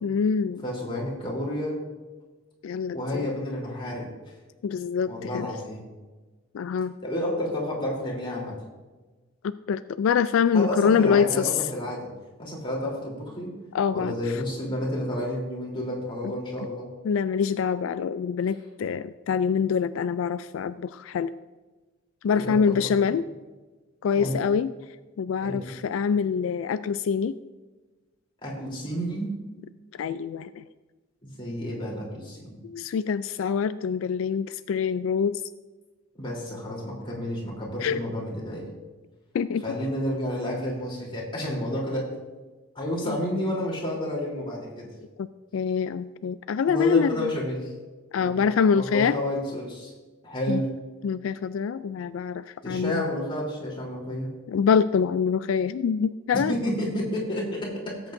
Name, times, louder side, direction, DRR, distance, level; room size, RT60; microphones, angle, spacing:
voice 1, 0.0-0.6 2.6-3.3 4.6-5.5 6.5-6.9 9.4-11.5 13.7-14.1 17.0-21.3 22.2-23.2 24.0-24.7 25.2-27.3 30.0-30.6 32.6-35.4 37.8-38.0 39.3-39.6 43.1-43.2 45.2-45.3 45.5-47.3 48.1-49.2 50.5-50.6 51.0-53.0 54.5-56.6, left 6 dB, 80° left, 13 dB, 0.3 m, -25 dB
voice 2, 0.6-1.8 2.9-4.1 5.0-5.8 7.0-8.6 10.5-12.1 12.4-13.5 13.9-16.9 22.4-22.6 22.8-22.9 24.1-24.4 25.4-25.7 28.4-29.3 31.2-32.6 36.2-38.6 39.6-42.1 42.7-44.9 46.7-47.7 48.2-48.5 48.7-49.9 50.2-50.7 52.6-54.3 56.5-58.0, equal, 25° left, -4 dB, 3.4 m, -30 dB
18.0 x 8.2 x 2.6 m, 1.2 s
head